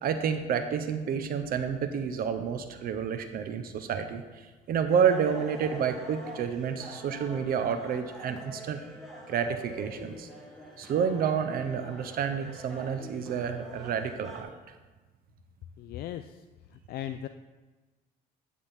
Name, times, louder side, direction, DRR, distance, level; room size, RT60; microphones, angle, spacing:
voice 1, 0.0-4.2 4.7-8.8 9.3-10.3 10.8-14.5, right 7 dB, 60° right, 8 dB, 0.7 m, -29 dB
sound 1, 4.9-14.4, right 1 dB, ahead, 1.8 m, -45 dB
voice 2, 15.8-16.4 16.7-17.3, left 11 dB, 65° left, 9 dB, 0.4 m, -38 dB
9.9 x 3.6 x 7.2 m, 1.3 s
cardioid pair, 110°, 17 cm